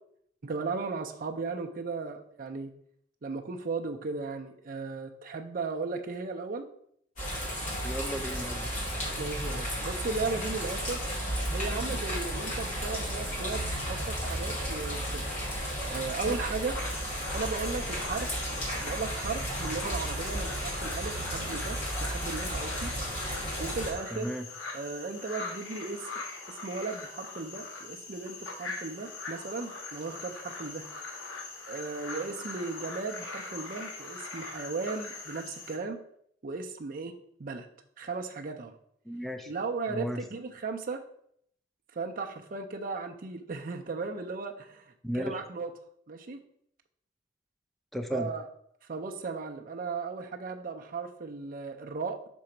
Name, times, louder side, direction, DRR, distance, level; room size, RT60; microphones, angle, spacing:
voice 1, 0.4-2.7 3.2-6.7 9.2-11.0 11.5-15.3 15.9-16.8 17.3-18.3 18.7-22.9 23.6-24.3 24.7-26.1 26.5-30.9 31.7-36.0 36.4-37.7 38.0-38.7 39.5-41.0 42.0-44.8 45.1-45.7 46.1-46.4 48.1-48.5 48.9-52.2, right 4 dB, 50° right, 3 dB, 0.5 m, -36 dB
sound 1, 7.2-23.9, equal, 40° left, 2.5 m, -33 dB
voice 2, 7.8-8.7 24.1-24.5 39.1-39.5 39.9-40.2 45.0-45.4 47.9-48.3, equal, ahead, 6 dB, 0.5 m, -34 dB
sound 2, 16.7-35.8, left 3 dB, 80° left, 1.1 m, -42 dB
6.1 x 3.8 x 4.4 m, 0.68 s
head